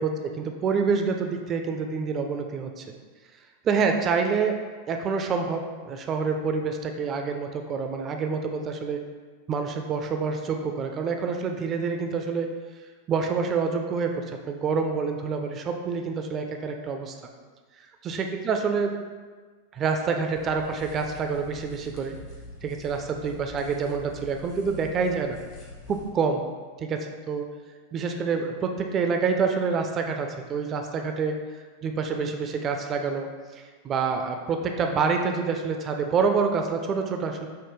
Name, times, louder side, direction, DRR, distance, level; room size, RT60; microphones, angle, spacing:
voice 1, 0.0-2.9 3.6-9.0 9.5-12.5 13.1-17.2 18.0-19.0 19.7-22.2 22.6-25.4 25.9-26.4 26.8-27.5 27.9-37.5, right 5 dB, 30° right, 4 dB, 0.3 m, -27 dB
sound 1, 20.3-26.1, left 2 dB, 45° left, 0.9 m, -44 dB
5.4 x 2.1 x 3.0 m, 1.5 s
figure-of-eight pair, 90°, 0 cm